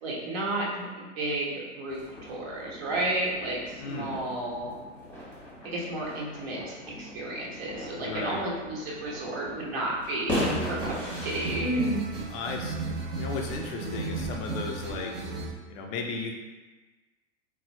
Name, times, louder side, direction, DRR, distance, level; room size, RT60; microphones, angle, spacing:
voice 1, 0.0-2.0 2.3-4.7 5.6-10.9 11.2-12.0, right 1 dB, 50° right, -4 dB, 1.2 m, -32 dB
sound 1, 1.9-11.7, left 1 dB, 5° left, 1.0 m, -38 dB
voice 2, 3.8-4.2 8.0-8.4 12.3-15.1 15.7-16.3, left 4 dB, 30° left, 1 dB, 0.4 m, -35 dB
sound 2, 10.3-15.5, right 3 dB, 30° right, 0.6 m, -34 dB
4.0 x 2.0 x 2.9 m, 1.2 s
figure-of-eight pair, 100°, 38 cm